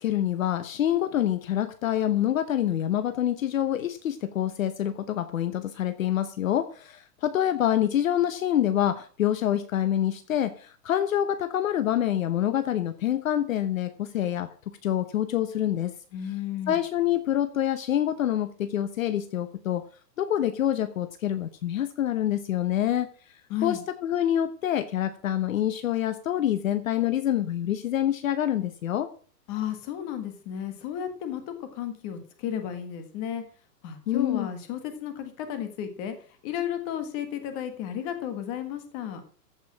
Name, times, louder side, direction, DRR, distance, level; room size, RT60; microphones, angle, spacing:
voice 1, 0.0-15.9 16.7-19.8 20.2-23.1 23.6-29.1 34.1-34.5, left 11 dB, 55° left, 11 dB, 1.0 m, -26 dB
voice 2, 16.1-16.8 23.5-23.8 29.5-33.4 33.8-36.1 36.4-39.2, left 10 dB, 20° left, 8 dB, 1.5 m, -33 dB
14.5 x 5.5 x 7.3 m, 0.43 s
hypercardioid pair, 175°, 49 cm